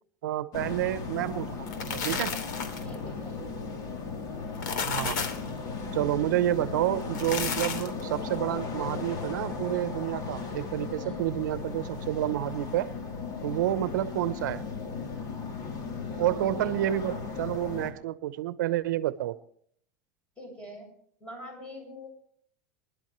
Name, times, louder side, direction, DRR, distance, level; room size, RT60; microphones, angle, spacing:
voice 1, 0.2-2.3 4.9-5.2 5.9-12.9 13.4-14.6 16.2-19.4, right 13 dB, 85° right, 13 dB, 0.9 m, -29 dB
sound 1, 0.5-17.9, left 4 dB, 40° left, 3.0 m, -36 dB
sound 2, 1.5-2.9 4.4-5.5 7.0-8.0, left 6 dB, 85° left, 2.9 m, -32 dB
voice 2, 2.8-3.6 11.0-11.2 16.1-16.7 20.4-20.9 21.2-22.1, left 1 dB, 10° left, 1 dB, 7.9 m, -44 dB
25.5 x 12.0 x 3.2 m, 0.63 s
supercardioid pair, 140°, 10 cm